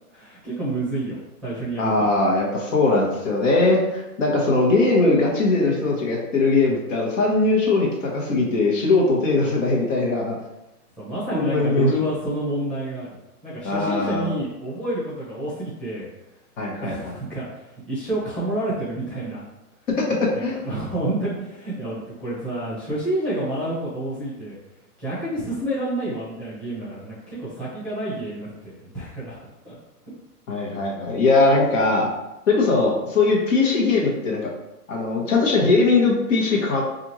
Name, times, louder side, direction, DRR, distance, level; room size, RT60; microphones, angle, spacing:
voice 1, 0.1-2.0 11.0-16.1 16.8-19.4 20.3-24.6 25.0-29.4 29.6-29.7, right 1 dB, ahead, -9 dB, 0.9 m, -29 dB
voice 2, 1.8-10.4 11.3-11.9 13.6-14.3 16.6-16.9 20.0-20.1 20.4-20.6 30.5-32.1 32.5-34.5 34.9-36.8, left 3 dB, 55° left, -2 dB, 1.3 m, -20 dB
4.9 x 2.6 x 3.0 m, 0.95 s
hypercardioid pair, 145°, 47 cm